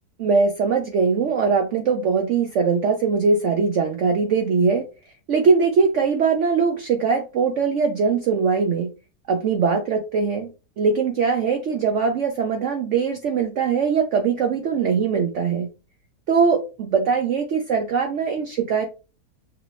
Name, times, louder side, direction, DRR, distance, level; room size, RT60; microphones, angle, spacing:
voice 1, 0.2-4.8 5.3-8.9 9.3-15.7 16.3-18.9, right 5 dB, 65° right, 5 dB, 0.8 m, -21 dB
5.9 x 2.6 x 3.1 m, 0.32 s
omnidirectional pair, 1.7 m